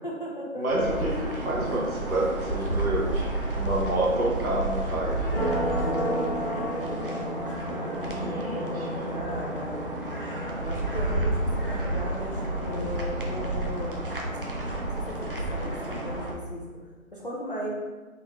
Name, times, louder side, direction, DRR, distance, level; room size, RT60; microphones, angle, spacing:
voice 1, 0.0-0.8 5.8-9.8 10.6-14.0 15.1-16.6 17.1-17.7, equal, 40° left, -5 dB, 0.5 m, -37 dB
voice 2, 0.6-5.3 8.0-9.1 12.6-13.4, right 2 dB, 80° right, -5 dB, 1.2 m, -29 dB
sound 1, 0.7-16.3, right 1 dB, 40° right, 0.5 m, -30 dB
3.6 x 3.1 x 3.2 m, 1.3 s
figure-of-eight pair, 165°, 42 cm